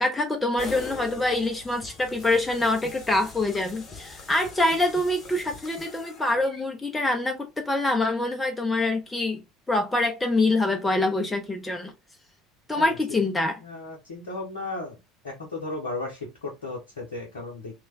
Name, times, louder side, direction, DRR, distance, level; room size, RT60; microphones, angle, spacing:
voice 1, 0.0-9.4 9.7-11.9 12.7-13.6, left 2 dB, 15° left, 0.5 m, -25 dB
sound 1, 0.6-6.6, left 3 dB, 35° left, 0.8 m, -42 dB
voice 2, 13.6-15.0 15.2-17.7, left 2 dB, 70° left, 0.8 m, -35 dB
3.1 x 2.2 x 3.2 m
figure-of-eight pair, 65°, 0 cm